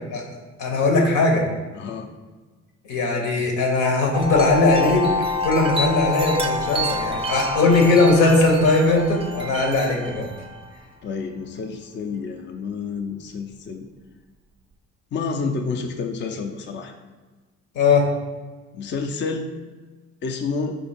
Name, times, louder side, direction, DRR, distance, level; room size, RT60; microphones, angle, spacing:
voice 1, 0.6-1.4 2.9-5.0 5.4-10.3 17.7-18.0, left 3 dB, 90° left, 1 dB, 1.0 m, -19 dB
voice 2, 1.7-2.1 11.0-13.9 15.1-16.9 18.7-19.5 20.2-20.8, left 4 dB, 40° left, 4 dB, 0.4 m, -29 dB
Wind chime, 4.1-10.6, left 2 dB, 20° right, 0.4 m, -27 dB
4.4 x 2.8 x 4.3 m, 1.3 s
cardioid pair, 90°, 30 cm